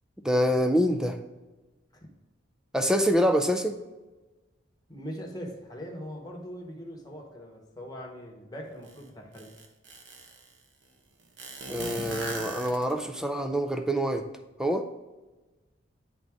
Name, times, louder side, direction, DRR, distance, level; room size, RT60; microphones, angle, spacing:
voice 1, 0.2-1.2 2.7-3.8 11.7-14.3 14.6-14.9, equal, 5° right, 6 dB, 0.4 m, -25 dB
voice 2, 4.9-9.5, equal, 20° left, 0 dB, 1.0 m, -41 dB
sound 1, 8.9-9.0 9.3-10.5 11.4-13.2, right 2 dB, 60° right, 0.9 m, -38 dB
9.0 x 3.9 x 3.5 m, 1.2 s
head